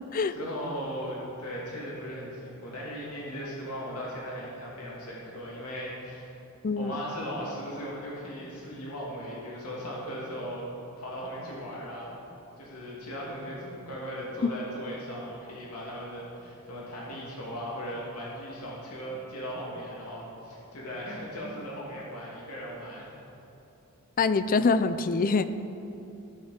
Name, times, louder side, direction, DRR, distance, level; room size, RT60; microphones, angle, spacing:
voice 1, 0.3-6.4 6.8-10.7 11.0-12.2 12.6-23.1, equal, 90° left, -5 dB, 2.7 m, -38 dB
voice 2, 24.2-25.4, left 4 dB, 40° left, 12 dB, 0.4 m, -24 dB
15.5 x 7.3 x 5.1 m, 2.8 s
head